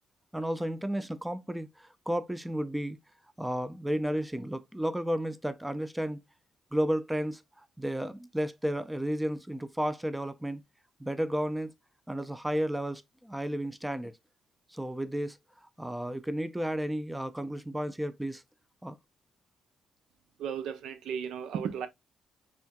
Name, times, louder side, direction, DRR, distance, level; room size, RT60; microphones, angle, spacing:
voice 1, 0.3-3.0 3.4-6.2 6.7-10.6 11.0-11.7 12.1-14.2 14.7-18.4 18.8-19.0, equal, 5° right, 0.4 m, -33 dB
voice 2, 20.4-21.9, right 7 dB, 80° right, 0.6 m, -35 dB
4.3 x 3.6 x 2.2 m
cardioid pair, 90°, 0 cm